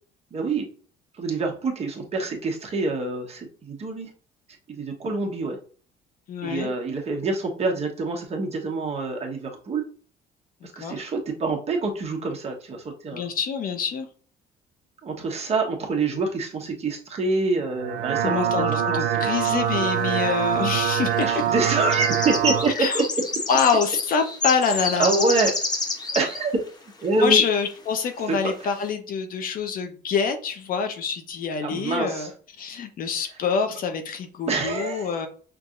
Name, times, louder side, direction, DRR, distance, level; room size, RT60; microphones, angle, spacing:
voice 1, 0.3-0.7 1.2-4.1 4.7-5.6 6.4-9.8 10.8-13.2 15.0-19.3 21.2-23.2 25.0-25.5 26.1-26.5 27.0-27.4 28.3-28.5 31.6-32.3 34.5-35.1, right 3 dB, 40° right, 0 dB, 1.2 m, -26 dB
voice 2, 6.3-6.7 10.6-11.0 13.1-14.1 18.2-21.3 22.7-23.0 23.5-25.1 27.2-32.3 32.6-35.3, left 6 dB, 55° left, 6 dB, 0.8 m, -26 dB
sound 1, 17.7-22.7, right 8 dB, 80° right, 0.6 m, -24 dB
sound 2, 20.0-20.1 20.9-21.1 21.4-26.4 26.7-26.8 27.2-27.3 28.1-28.2 28.6-28.8, left 3 dB, 25° left, 0.9 m, -29 dB
5.8 x 2.7 x 2.5 m, 0.41 s
cardioid pair, 110°, 17 cm